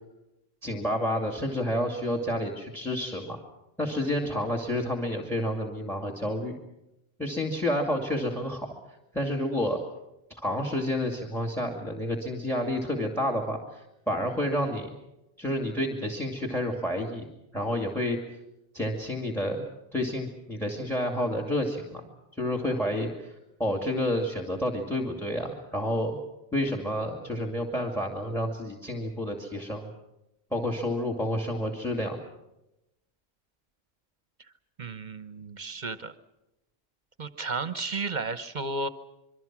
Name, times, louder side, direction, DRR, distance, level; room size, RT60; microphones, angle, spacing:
voice 1, 0.6-3.4 3.8-6.6 7.2-8.7 9.1-9.8 10.3-14.9 15.4-17.3 17.5-18.2 18.7-19.7 19.9-22.0 22.4-23.3 23.6-26.2 26.5-29.9 30.5-32.2, left 1 dB, ahead, 3 dB, 2.5 m, -29 dB
voice 2, 34.8-36.1 37.2-38.9, right 3 dB, 45° right, 12 dB, 1.2 m, -33 dB
26.5 x 23.0 x 6.1 m, 0.92 s
omnidirectional pair, 1.1 m